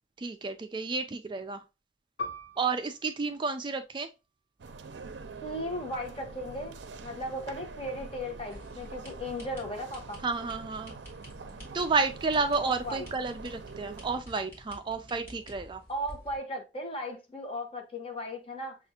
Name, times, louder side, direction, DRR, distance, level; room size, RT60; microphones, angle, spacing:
voice 1, 0.2-1.6 2.6-4.1 10.2-10.9 11.7-15.8, right 4 dB, 25° right, 0.3 m, -31 dB
Piano, 2.2-7.2 7.6-7.7 8.5-8.9, left 2 dB, 85° left, 1.2 m, -45 dB
sound 1, 4.6-14.2, right 4 dB, 85° right, 0.5 m, -45 dB
voice 2, 5.4-10.2 12.8-13.1 15.9-18.8, equal, 30° left, 1.0 m, -36 dB
sound 2, 8.5-16.4, equal, 10° left, 2.3 m, -50 dB
6.8 x 2.4 x 2.8 m
head